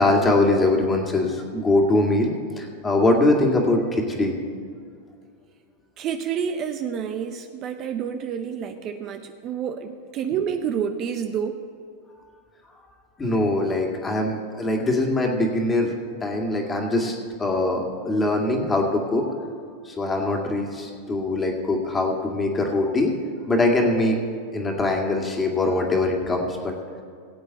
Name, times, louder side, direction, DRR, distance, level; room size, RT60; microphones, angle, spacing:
voice 1, 0.0-4.3 13.2-15.9 16.2-19.3 19.8-23.1 23.5-24.2 24.5-26.7, left 2 dB, 15° left, 1 dB, 2.2 m, -22 dB
voice 2, 6.0-11.6, right 7 dB, 40° right, 7 dB, 0.8 m, -29 dB
17.5 x 8.2 x 4.2 m, 2.2 s
hypercardioid pair, 120°, 0 cm